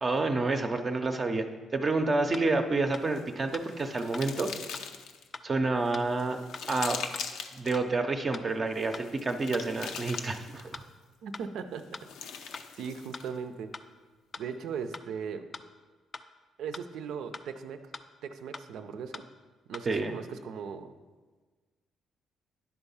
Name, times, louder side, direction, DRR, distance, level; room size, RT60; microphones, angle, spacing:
voice 1, 0.0-1.4 1.7-4.5 5.4-6.4 6.7-7.0 7.5-10.8 19.9-20.2, right 3 dB, 35° right, 5 dB, 0.6 m, -29 dB
sound 1, 2.3-2.4 2.9-3.0 3.5-3.6 4.1-4.2 4.7-4.8 5.3-5.4 5.9-6.0 6.5-6.6 7.1-7.2 7.7-7.8 8.3-8.4 8.9-9.0 9.5-9.6 10.1-10.2 10.7-10.8 11.3-11.4 11.9-12.0 12.5-12.6 13.1-13.2 13.7-13.8 14.3-14.4 14.9-15.0 15.5-15.6 16.1-16.2 16.7-16.8 17.3-17.4 17.9-18.0 18.5-18.6 19.1-19.2 19.7-19.8, left 4 dB, 35° left, 0.4 m, -41 dB
sound 2, 3.0-5.3 5.8-7.8 8.7-10.8 11.8-13.4, left 6 dB, 85° left, 0.5 m, -41 dB
voice 2, 11.2-11.9 12.8-13.7 14.4-15.5 16.6-17.9 18.2-19.3 19.7-20.9, right 6 dB, 80° right, 9 dB, 0.5 m, -38 dB
10.5 x 3.5 x 5.5 m, 1.3 s
cardioid pair, 90°, 0 cm